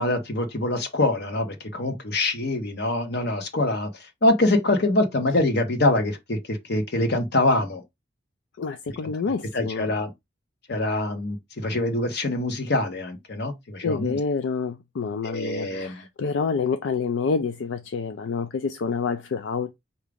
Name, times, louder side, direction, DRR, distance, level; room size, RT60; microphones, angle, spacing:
voice 1, 0.0-3.9 4.2-7.8 9.5-10.1 10.7-14.2 15.2-16.0, left 2 dB, 60° left, 1.1 m, -24 dB
voice 2, 8.6-9.9 13.8-19.7, left 5 dB, 80° left, 0.4 m, -28 dB
4.9 x 2.8 x 3.5 m
head